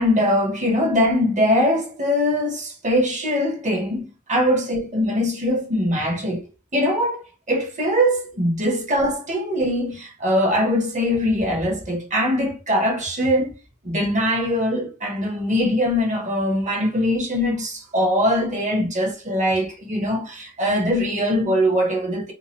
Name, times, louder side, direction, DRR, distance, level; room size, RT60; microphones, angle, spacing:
voice 1, 0.0-6.4 6.7-13.5 13.8-22.3, equal, 35° right, 1.2 m, -22 dB
2.9 x 2.4 x 4.0 m
head